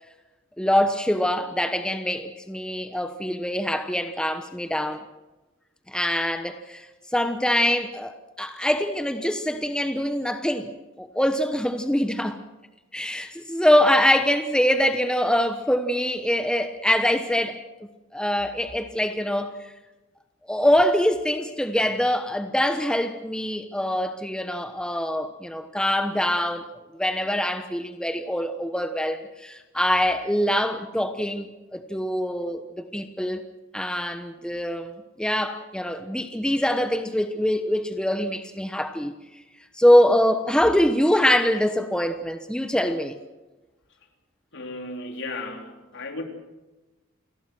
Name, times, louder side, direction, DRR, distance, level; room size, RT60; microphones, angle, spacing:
voice 1, 0.6-5.0 5.9-10.7 11.0-12.4 12.9-17.6 18.1-19.7 20.5-26.7 27.0-33.4 33.7-34.9 35.2-39.2 39.8-43.2, equal, 5° left, 1.1 m, -24 dB
voice 2, 44.5-46.2, left 2 dB, 60° left, 3.7 m, -35 dB
28.5 x 19.5 x 6.2 m
head